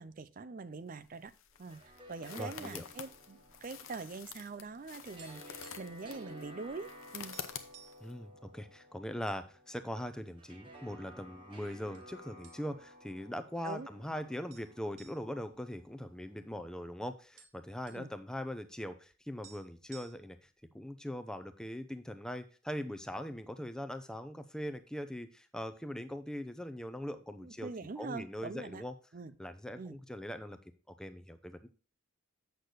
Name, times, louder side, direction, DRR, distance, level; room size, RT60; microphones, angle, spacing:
voice 1, 0.0-1.3 1.6-1.8 2.1-7.4 13.6-14.2 17.9-18.1 27.4-28.8 29.1-29.4 29.8-30.0, right 4 dB, 40° right, 0.4 m, -44 dB
sound 1, 0.9-8.1, left 8 dB, 75° left, 0.8 m, -49 dB
sound 2, 1.5-16.7, equal, 25° right, 1.2 m, -55 dB
voice 2, 2.4-2.8 8.0-20.5 20.7-27.7 28.0-28.9 29.4-30.6 31.0-31.7, equal, 5° left, 0.6 m, -41 dB
sound 3, 5.2-6.1 6.3-6.5 6.9-7.0 7.3-8.1 8.7-9.4 9.8-9.9 10.6-11.2 11.9-12.1 12.4-13.0 13.3-13.4 14.5-16.6 16.9-17.0 17.1-18.1 19.1-19.2 19.4-20.5, right 8 dB, 70° right, 1.3 m, -58 dB
8.0 x 6.6 x 3.9 m
head